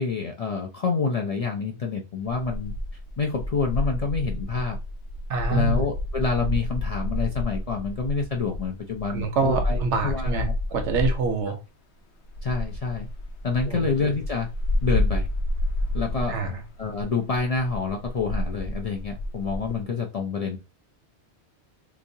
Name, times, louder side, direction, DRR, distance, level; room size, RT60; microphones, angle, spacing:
voice 1, 0.0-2.7 3.2-4.8 5.5-10.5 11.5-11.6 12.4-13.1 13.4-14.5 14.8-15.3 15.9-16.4 16.8-20.6, left 5 dB, 55° left, 0 dB, 0.4 m, -27 dB
sound 1, 2.3-11.4 12.3-19.8, left 1 dB, 75° left, 0.9 m, -29 dB
voice 2, 5.3-5.8 9.1-11.5 13.7-13.9 16.3-16.6, right 4 dB, 90° right, 5 dB, 1.1 m, -26 dB
3.5 x 3.0 x 2.6 m, 0.29 s
omnidirectional pair, 1.2 m